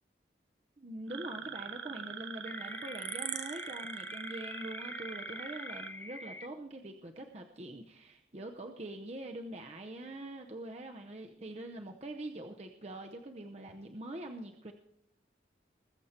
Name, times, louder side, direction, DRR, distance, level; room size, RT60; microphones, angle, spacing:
voice 1, 0.8-14.7, right 1 dB, 35° right, 3 dB, 0.7 m, -44 dB
sound 1, 1.1-5.9, right 7 dB, 85° right, 1.0 m, -42 dB
sound 2, 2.5-6.5, left 2 dB, 10° left, 0.4 m, -46 dB
21.0 x 7.3 x 4.3 m, 0.82 s
head